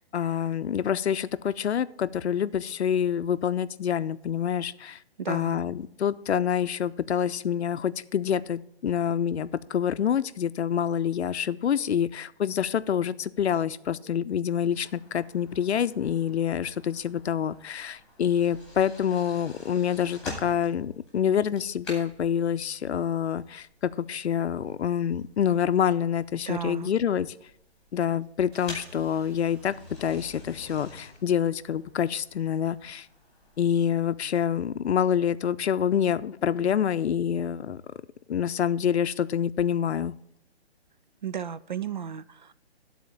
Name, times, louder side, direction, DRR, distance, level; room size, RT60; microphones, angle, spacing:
voice 1, 0.0-5.0 5.3-27.3 27.9-29.7 30.0-33.1 33.6-37.8 38.3-40.1, left 8 dB, 80° left, 14 dB, 0.6 m, -27 dB
voice 2, 5.2-5.6 26.5-26.9 41.2-42.5, right 8 dB, 45° right, 14 dB, 0.4 m, -34 dB
sound 1, 14.7-33.6, left 2 dB, ahead, 2.4 m, -48 dB
sound 2, 28.5-30.5, right 1 dB, 70° right, 1.6 m, -51 dB
12.5 x 4.3 x 7.1 m, 0.77 s
hypercardioid pair, 170°, 33 cm